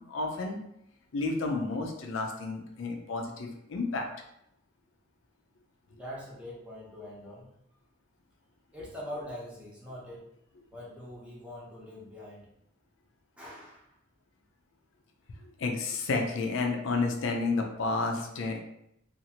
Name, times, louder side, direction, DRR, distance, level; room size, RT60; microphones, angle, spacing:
voice 1, 0.1-0.6 1.1-4.1 15.6-18.6, left 3 dB, 65° left, 2 dB, 0.4 m, -31 dB
voice 2, 5.9-7.5 8.7-10.2 10.7-12.5 13.4-13.9, left 1 dB, 5° right, -6 dB, 0.8 m, -43 dB
2.7 x 2.4 x 2.8 m, 0.78 s
head